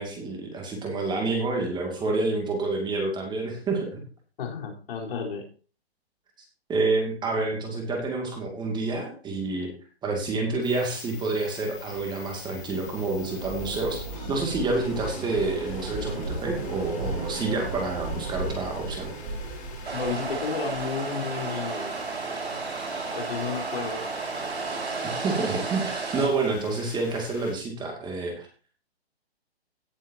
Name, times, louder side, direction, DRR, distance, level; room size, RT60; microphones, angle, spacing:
voice 1, 0.0-4.0 6.7-9.7 10.0-19.1 25.2-28.5, right 3 dB, 15° right, 2 dB, 2.3 m, -28 dB
voice 2, 4.4-5.5 7.4-7.5 19.9-21.9 23.1-24.0, left 5 dB, 60° left, 1 dB, 4.1 m, -32 dB
sound 1, 10.6-27.5, left 5 dB, 25° left, 5.3 m, -46 dB
sound 2, 11.9-20.9, right 2 dB, 40° right, 4.0 m, -35 dB
sound 3, 19.8-26.3, right 4 dB, 80° right, 4.5 m, -32 dB
17.0 x 7.6 x 2.8 m, 0.37 s
hypercardioid pair, 145°, 32 cm